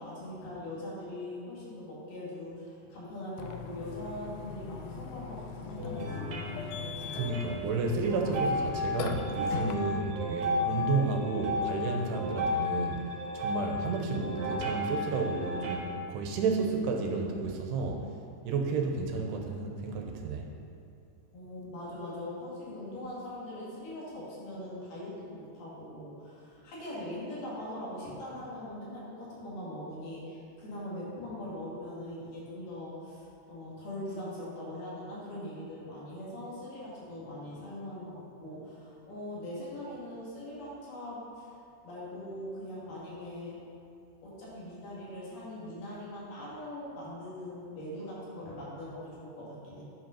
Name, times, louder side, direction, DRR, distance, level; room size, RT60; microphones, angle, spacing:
voice 1, 0.0-6.7 21.3-41.6 41.8-43.6 44.2-49.8, left 1 dB, 70° left, -7 dB, 4.0 m, -41 dB
Burping eructation, 3.4-9.8, left 6 dB, 85° left, 2.7 m, -40 dB
sound 1, 5.8-15.8, left 2 dB, 60° right, 2.3 m, -34 dB
voice 2, 7.1-13.1 13.3-15.8 16.1-18.0 18.4-20.5, right 4 dB, 85° right, 2 dB, 2.9 m, -31 dB
10.0 x 5.3 x 5.7 m, 2.5 s
omnidirectional pair, 4.7 m